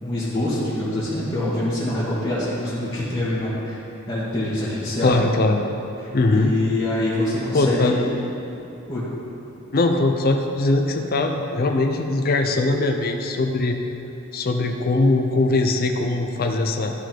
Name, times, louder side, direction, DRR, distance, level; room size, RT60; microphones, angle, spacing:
voice 1, 0.0-3.8 4.1-5.2 6.3-8.0 8.9-9.1, left 1 dB, 25° left, -13 dB, 1.8 m, -25 dB
voice 2, 5.0-5.6 6.1-6.5 7.5-8.0 9.7-13.8 14.3-16.9, left 2 dB, 45° left, 4 dB, 0.6 m, -21 dB
12.5 x 4.6 x 4.5 m, 2.8 s
head